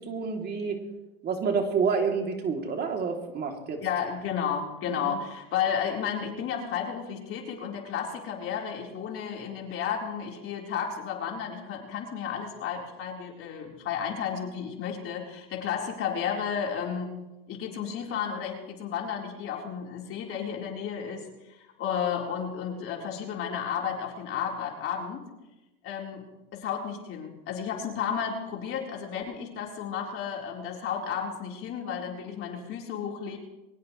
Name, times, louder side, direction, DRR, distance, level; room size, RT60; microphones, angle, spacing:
voice 1, 0.1-0.8 1.2-3.8 5.0-5.1, right 5 dB, 35° right, 2 dB, 3.1 m, -28 dB
voice 2, 3.8-17.1 17.5-25.3 25.8-26.2 26.5-33.4, left 7 dB, 45° left, 0 dB, 4.2 m, -32 dB
22.5 x 19.0 x 3.3 m, 1.0 s
supercardioid pair, 105°, 29 cm